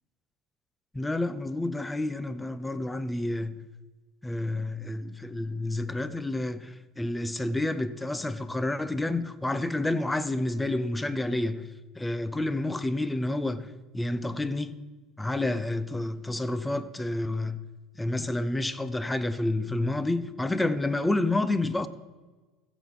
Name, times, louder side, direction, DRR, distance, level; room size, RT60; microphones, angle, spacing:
voice 1, 0.9-3.6 4.2-11.7 12.0-14.8 15.2-17.6 18.0-21.9, left 2 dB, 10° left, 0.7 m, -29 dB
15.0 x 7.3 x 5.6 m
supercardioid pair, 95°, 0 cm